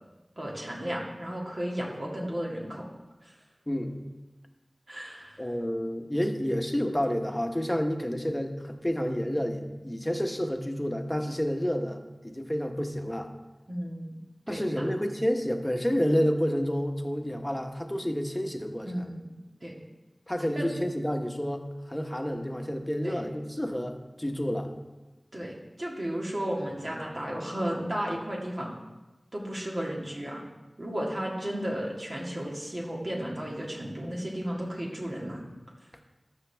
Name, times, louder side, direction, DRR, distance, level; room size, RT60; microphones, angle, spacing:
voice 1, 0.4-2.8 3.2-3.3 4.9-5.4 13.7-14.2 14.5-14.9 18.8-19.3 19.6-19.8 20.5-20.7 23.0-23.2 25.3-28.7 29.3-30.4 30.8-35.4, equal, 55° right, -3 dB, 1.9 m, -34 dB
voice 2, 5.4-12.0 12.2-13.3 14.5-19.0 20.3-24.7, equal, 15° left, 4 dB, 1.1 m, -29 dB
12.5 x 6.7 x 3.4 m, 1.1 s
wide cardioid pair, 40°, 0 cm